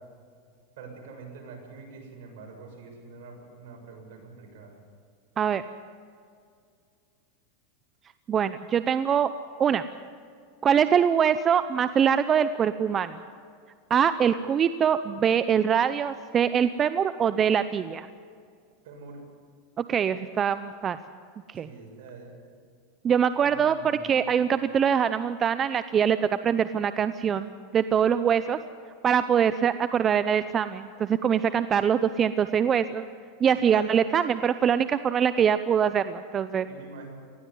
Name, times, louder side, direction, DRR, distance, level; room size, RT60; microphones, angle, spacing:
voice 1, 0.8-4.7 18.8-19.2 21.6-22.3 23.4-24.2 33.5-34.3 36.7-37.1, right 4 dB, 70° right, 1 dB, 7.1 m, -45 dB
voice 2, 8.3-9.3 9.6-9.8 10.6-13.2 13.9-18.1 19.8-21.0 21.5-21.7 23.0-28.6 29.0-33.1 33.4-36.7, right 8 dB, 25° right, 12 dB, 0.6 m, -23 dB
19.5 x 14.5 x 9.8 m, 2.2 s
supercardioid pair, 130°, 0 cm